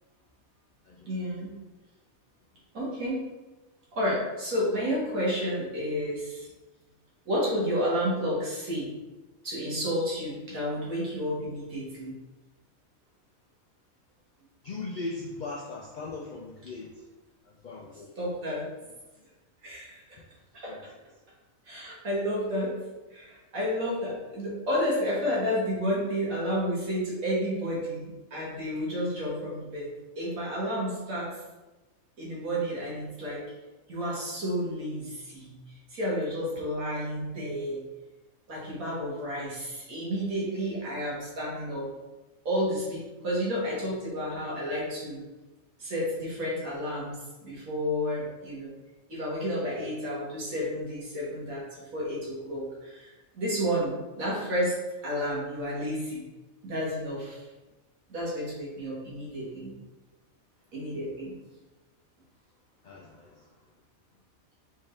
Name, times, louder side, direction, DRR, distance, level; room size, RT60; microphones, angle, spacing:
voice 1, 1.1-1.5 2.7-3.2 4.0-6.5 7.3-8.9 9.4-12.1 18.2-18.7 19.6-20.0 20.5-20.7 21.7-22.8 23.1-29.9 30.2-31.3 32.2-33.4 33.9-35.5 35.9-37.8 38.5-41.9 42.5-45.2 45.8-48.7 49.1-53.1 53.4-54.8 55.0-56.2 56.6-57.4 58.1-59.7 60.7-61.3, equal, 85° right, -6 dB, 1.8 m, -31 dB
voice 2, 14.6-17.1 17.4-18.1 20.2-20.3 20.7-20.8 48.4-48.5 51.9-52.0 62.8-63.5, left 3 dB, 85° left, -1 dB, 0.4 m, -39 dB
4.2 x 3.6 x 3.2 m, 1.1 s
omnidirectional pair, 1.4 m